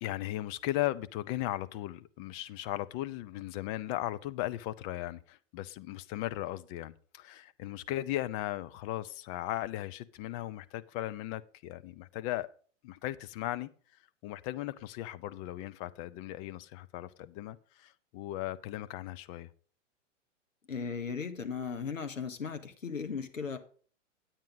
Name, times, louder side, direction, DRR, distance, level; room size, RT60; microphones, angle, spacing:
voice 1, 0.0-12.5 12.8-13.7 14.2-19.5, left 15 dB, 30° left, 0.5 m, -37 dB
voice 2, 20.7-23.6, left 5 dB, 85° left, 1.5 m, -37 dB
9.4 x 8.8 x 4.0 m
figure-of-eight pair, 105°, 38 cm